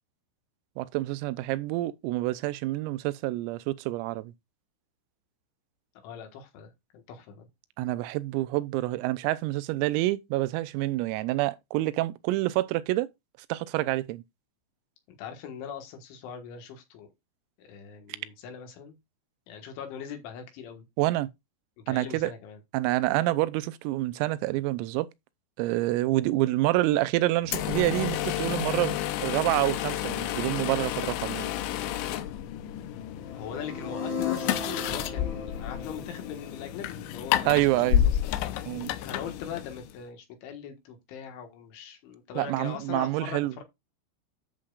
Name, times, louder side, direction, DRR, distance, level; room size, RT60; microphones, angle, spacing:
voice 1, 0.8-4.3 7.8-13.1 13.5-14.2 21.0-21.3 21.9-22.3 22.7-25.1 25.6-29.0 29.2-31.5 37.5-38.1 38.7-38.9 42.4-43.5, right 17 dB, 90° right, 3.3 m, -27 dB
voice 2, 6.0-7.5 15.1-17.1 17.6-19.0 19.5-20.8 21.9-22.6 33.3-38.1 39.0-43.6, left 8 dB, 70° left, 3.7 m, -41 dB
sound 1, 27.4-40.0, left 11 dB, 90° left, 2.6 m, -31 dB
sound 2, 33.2-37.2, left 5 dB, 45° left, 3.0 m, -36 dB
9.9 x 7.6 x 2.4 m
omnidirectional pair, 6.0 m